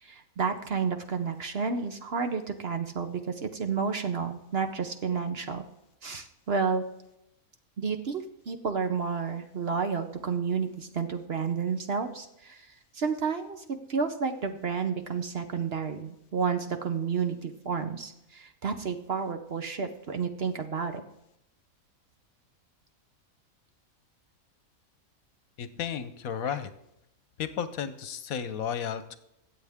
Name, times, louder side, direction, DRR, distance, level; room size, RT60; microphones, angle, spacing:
voice 1, 0.0-5.6 6.0-6.8 7.8-12.7 12.9-13.6 13.9-21.0 26.5-26.6, right 5 dB, 50° right, 7 dB, 0.9 m, -31 dB
voice 2, 25.6-26.7 27.4-29.2, left 8 dB, 75° left, 12 dB, 1.2 m, -33 dB
23.0 x 7.8 x 3.6 m, 0.82 s
omnidirectional pair, 1.5 m